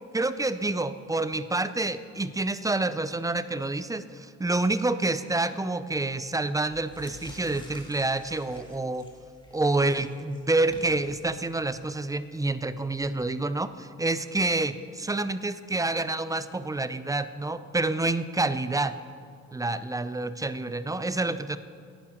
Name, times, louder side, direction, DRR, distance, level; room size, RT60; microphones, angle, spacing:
voice 1, 0.1-9.1 9.5-19.0 19.5-21.6, right 2 dB, 10° right, 13 dB, 0.5 m, -28 dB
sound 1, 6.6-13.1, left 2 dB, 15° left, 2.8 m, -50 dB
11.0 x 9.5 x 7.1 m, 2.2 s
cardioid pair, 90°, 30 cm